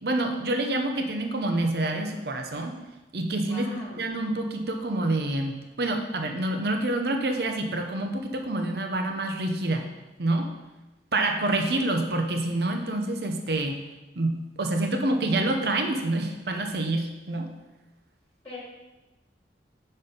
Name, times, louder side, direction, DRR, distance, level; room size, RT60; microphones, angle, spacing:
voice 1, 0.0-2.7 3.1-9.9 10.2-10.5 11.1-13.8 14.2-17.5, right 2 dB, 65° right, 3 dB, 0.7 m, -27 dB
voice 2, 3.4-4.0 18.4-18.6, left 2 dB, 20° left, -6 dB, 1.6 m, -41 dB
5.6 x 4.3 x 5.1 m, 1.1 s
head